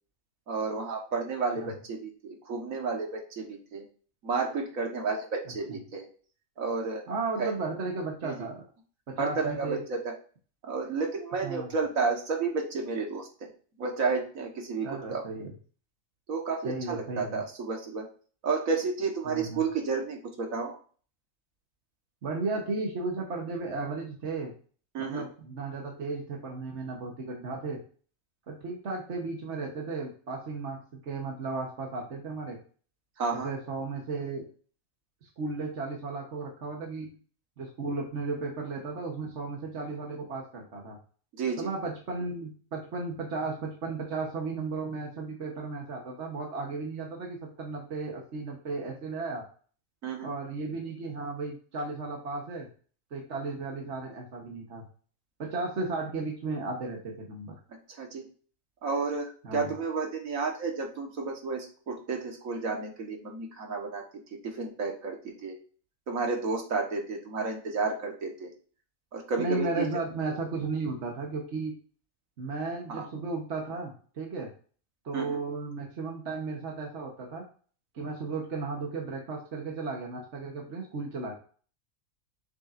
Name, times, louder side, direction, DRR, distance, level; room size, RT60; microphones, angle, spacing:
voice 1, 0.5-3.8 4.2-6.1 6.6-7.1 7.4-7.5 8.2-8.5 9.2-10.1 10.6-13.5 13.8-15.2 16.3-18.1 18.4-20.8 24.9-25.3 33.2-33.5 41.4-41.7 50.0-50.4 57.7-58.3 58.8-64.0 64.3-65.6 66.1-68.5 69.1-69.9 72.9-73.1 75.1-75.4, right 4 dB, 75° right, 2 dB, 1.7 m, -31 dB
voice 2, 7.1-8.6 9.1-9.8 11.4-11.7 14.8-15.5 16.6-17.4 19.3-19.6 22.2-24.5 25.0-27.8 28.5-32.6 33.4-34.5 35.4-37.2 37.6-41.0 41.6-49.4 50.2-52.7 53.1-54.8 55.4-57.5 59.4-59.7 69.4-71.7 72.4-74.5 75.0-77.4 77.9-81.3, right 3 dB, 60° right, 0 dB, 1.4 m, -34 dB
7.0 x 6.8 x 2.5 m, 0.41 s
omnidirectional pair, 1.4 m